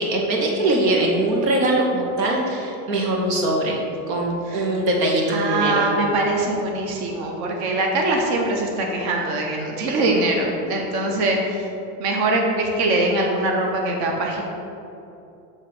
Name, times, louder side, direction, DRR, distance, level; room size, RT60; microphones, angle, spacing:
voice 1, 0.0-3.8 4.1-5.9, right 1 dB, 85° right, -1 dB, 1.4 m, -22 dB
voice 2, 5.3-11.6 12.0-14.4, right 2 dB, 50° right, 0 dB, 1.1 m, -22 dB
7.3 x 3.1 x 5.9 m, 2.8 s
supercardioid pair, 115°, 48 cm